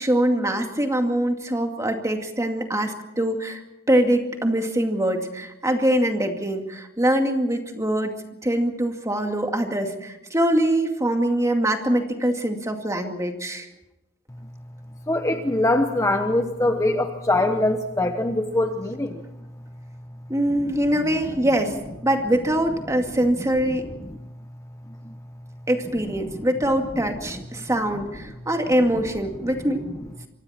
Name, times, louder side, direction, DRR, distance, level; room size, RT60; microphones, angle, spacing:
voice 1, 0.0-3.6 3.9-8.1 8.4-13.7 20.3-23.9 25.7-29.8, right 1 dB, 15° right, 4 dB, 2.3 m, -23 dB
voice 2, 15.1-19.2 24.9-25.2 26.3-26.4 29.4-29.5, left 1 dB, 15° left, 5 dB, 1.1 m, -23 dB
27.5 x 25.0 x 4.4 m, 0.92 s
head